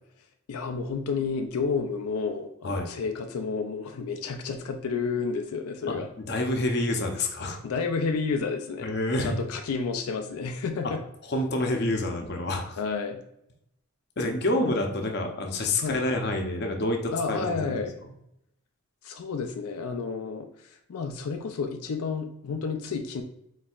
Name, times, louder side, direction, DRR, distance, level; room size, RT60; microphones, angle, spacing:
voice 1, 0.5-6.1 7.6-8.9 9.2-11.0 12.8-13.2 15.8-16.0 17.1-17.9 19.0-23.2, left 4 dB, 90° left, 5 dB, 0.4 m, -30 dB
voice 2, 6.3-7.6 8.8-9.3 11.3-12.8 14.2-17.7, left 1 dB, 50° left, 3 dB, 0.6 m, -27 dB
4.3 x 4.1 x 2.4 m, 0.77 s
head